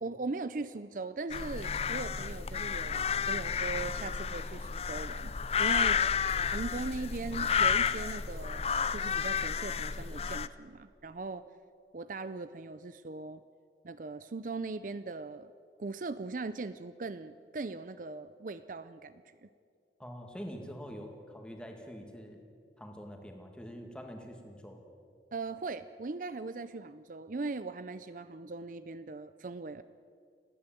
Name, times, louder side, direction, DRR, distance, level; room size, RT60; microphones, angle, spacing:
voice 1, 0.0-5.3 5.6-6.0 6.4-11.4 11.9-13.4 13.8-15.5 15.8-19.5 25.3-29.8, right 3 dB, 50° right, 13 dB, 0.5 m, -39 dB
sound 1, 1.3-10.5, left 6 dB, 35° left, 0.5 m, -31 dB
voice 2, 6.1-6.7 7.2-7.7 20.0-22.4 22.8-24.8, equal, 5° left, 3 dB, 2.2 m, -46 dB
29.5 x 10.5 x 9.1 m, 2.3 s
head